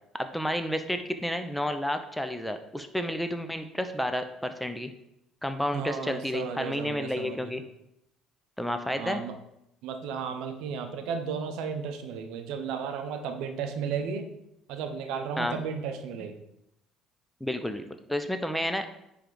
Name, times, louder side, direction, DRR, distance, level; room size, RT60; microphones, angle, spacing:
voice 1, 0.1-4.9 5.4-7.6 8.6-9.2 15.4-15.6 17.4-18.9, equal, 5° left, 8 dB, 0.7 m, -31 dB
voice 2, 5.7-7.5 9.0-9.4 9.8-14.3 14.7-16.4, right 6 dB, 75° right, 8 dB, 0.7 m, -34 dB
9.7 x 3.4 x 4.0 m, 0.82 s
hypercardioid pair, 65°, 0 cm